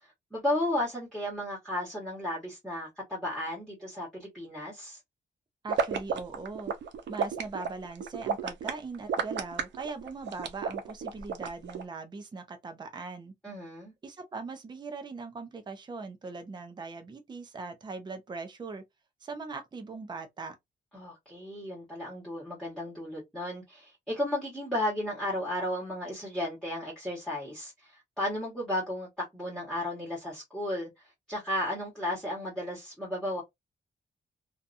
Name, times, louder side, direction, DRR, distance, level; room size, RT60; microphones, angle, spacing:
voice 1, 0.3-5.0 13.4-13.9 20.9-30.9 31.3-33.4, left 1 dB, ahead, 1.2 m, -34 dB
voice 2, 5.6-6.7 7.1-13.3 14.0-18.8 19.2-20.6, right 4 dB, 25° right, 0.5 m, -40 dB
sound 1, 5.7-11.8, right 6 dB, 90° right, 0.6 m, -32 dB
2.7 x 2.3 x 2.5 m
wide cardioid pair, 145°, 18 cm